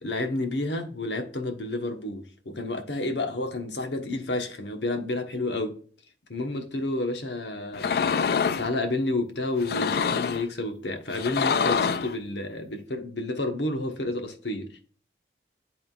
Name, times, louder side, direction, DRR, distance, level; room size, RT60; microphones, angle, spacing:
voice 1, 0.0-5.8 6.3-8.1 8.4-14.8, left 2 dB, 85° left, 1.1 m, -30 dB
sound 1, 7.7-8.7 9.6-10.5 11.1-12.1, left 6 dB, 60° left, 0.3 m, -25 dB
11.0 x 3.7 x 2.4 m
head